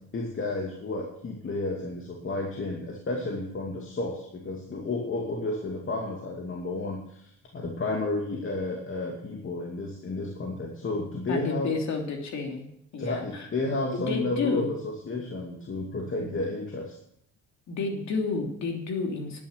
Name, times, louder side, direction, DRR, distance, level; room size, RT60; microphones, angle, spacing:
voice 1, 0.1-11.7 13.0-17.0, left 2 dB, 40° left, 0 dB, 2.5 m, -32 dB
voice 2, 11.3-12.6 12.9-13.5 14.1-14.7 16.2-16.3 17.7-19.4, left 4 dB, 65° left, 2 dB, 3.2 m, -30 dB
11.5 x 10.5 x 6.8 m, 0.73 s
cardioid pair, 90°, 30 cm